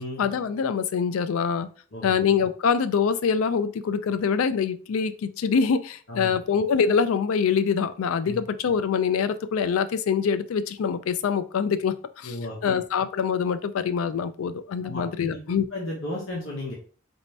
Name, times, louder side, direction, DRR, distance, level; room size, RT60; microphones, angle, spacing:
voice 1, 0.2-1.7 2.0-12.4 12.6-15.7, left 6 dB, 90° left, 0.4 m, -24 dB
voice 2, 12.2-12.8 14.8-15.4 15.7-16.7, left 1 dB, 70° left, 1.0 m, -34 dB
4.1 x 2.7 x 3.3 m
head